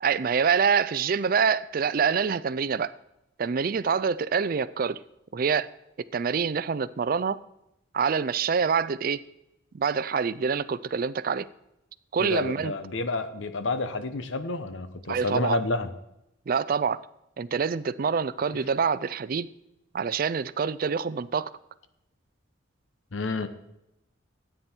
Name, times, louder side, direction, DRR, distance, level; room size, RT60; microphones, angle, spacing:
voice 1, 0.0-2.9 3.4-5.0 5.3-5.7 6.1-7.4 7.9-9.2 9.7-11.5 12.1-12.7 15.1-15.6 16.5-17.1 17.4-19.5 19.9-21.5, right 6 dB, 45° right, 0.4 m, -26 dB
voice 2, 12.2-15.9 23.1-23.5, left 2 dB, 80° left, 0.9 m, -29 dB
13.5 x 9.3 x 4.4 m
head